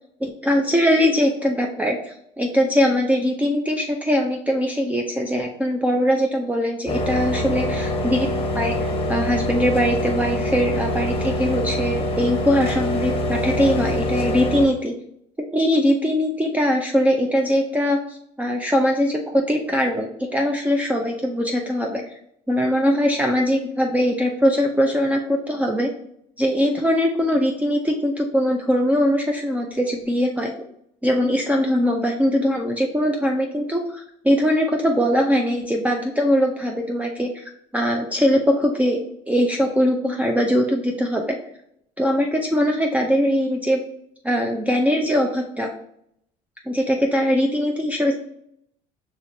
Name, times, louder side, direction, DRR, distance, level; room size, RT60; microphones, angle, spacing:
voice 1, 0.2-14.9 15.5-22.0 22.5-25.9 26.4-30.5 31.0-37.4 37.7-39.0 39.3-41.4 42.0-43.8 44.2-45.7 46.7-48.1, equal, 10° right, 1 dB, 0.5 m, -21 dB
sound 1, 6.9-14.7, left 1 dB, 35° left, 0.9 m, -24 dB
4.9 x 3.1 x 2.7 m, 0.73 s
hypercardioid pair, 75°, 17 cm